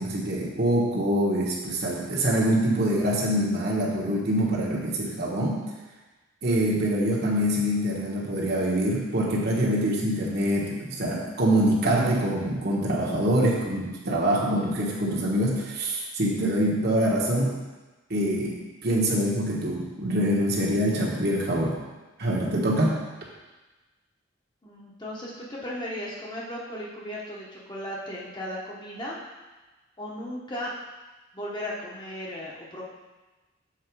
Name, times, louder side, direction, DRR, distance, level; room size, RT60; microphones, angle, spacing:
voice 1, 0.0-5.6 6.4-17.6 18.1-21.8 22.2-23.0, right 1 dB, 55° right, -4 dB, 1.4 m, -25 dB
voice 2, 24.6-29.2 30.0-30.7 31.3-32.8, left 1 dB, 20° left, -5 dB, 1.2 m, -36 dB
7.5 x 4.6 x 4.7 m, 1.2 s
head